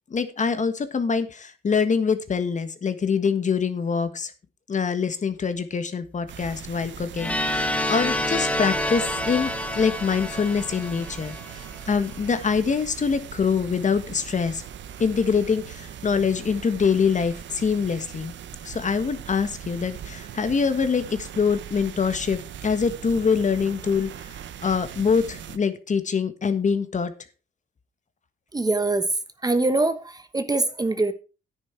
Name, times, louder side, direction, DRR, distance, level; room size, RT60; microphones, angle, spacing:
voice 1, 0.1-4.3 4.7-14.6 15.0-18.3 18.6-27.1, left 5 dB, 40° left, 1.5 m, -24 dB
sound 1, 6.3-25.6, right 10 dB, 70° right, 1.0 m, -40 dB
sound 2, 7.2-12.0, left 1 dB, 5° left, 1.2 m, -28 dB
voice 2, 28.5-29.1 29.4-31.1, right 2 dB, 20° right, 1.1 m, -23 dB
10.0 x 9.6 x 4.6 m
cardioid pair, 90°, 20 cm